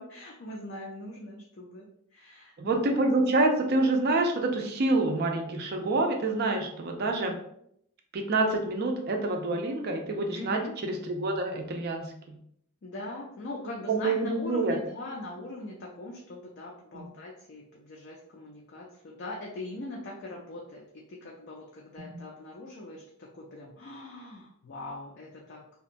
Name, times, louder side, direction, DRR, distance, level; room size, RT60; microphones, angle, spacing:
voice 1, 0.0-2.7 10.3-10.8 12.8-25.8, left 2 dB, 50° left, -2 dB, 0.4 m, -41 dB
voice 2, 2.6-7.4 8.1-12.4 13.9-14.8 16.9-17.1, right 2 dB, 45° right, 3 dB, 0.4 m, -27 dB
2.8 x 2.2 x 2.5 m, 0.71 s
head